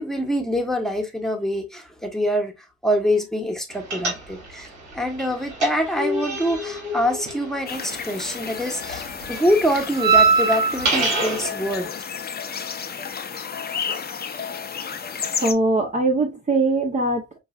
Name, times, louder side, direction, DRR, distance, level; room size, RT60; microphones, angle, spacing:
voice 1, 0.0-2.5 2.8-4.7 4.9-11.9, equal, ahead, 1.0 m, -25 dB
sound 1, 3.9-4.7 4.9-8.3 8.6-11.5, right 3 dB, 70° right, 2.3 m, -23 dB
sound 2, 7.7-15.5, left 6 dB, 30° left, 0.6 m, -32 dB
voice 2, 15.4-17.4, right 2 dB, 25° right, 0.8 m, -21 dB
5.4 x 2.5 x 2.3 m
cardioid pair, 90°, 30 cm